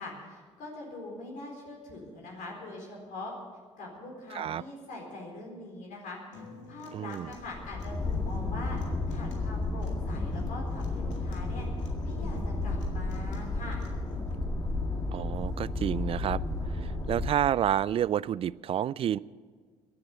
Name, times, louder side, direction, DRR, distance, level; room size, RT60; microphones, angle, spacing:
voice 1, 0.0-3.3 3.8-8.8 9.1-11.7 12.0-13.8, left 2 dB, 60° left, -1 dB, 4.3 m, -43 dB
Human voice / Acoustic guitar, 6.3-14.3, left 3 dB, 80° left, 1.9 m, -50 dB
voice 2, 6.9-7.3 15.1-16.4 16.7-19.2, right 10 dB, 40° right, 22 dB, 0.4 m, -29 dB
sound 1, 7.3-17.3, left 2 dB, 25° left, 2.0 m, -32 dB
15.5 x 10.5 x 8.1 m, 1.5 s
figure-of-eight pair, 50°, 15 cm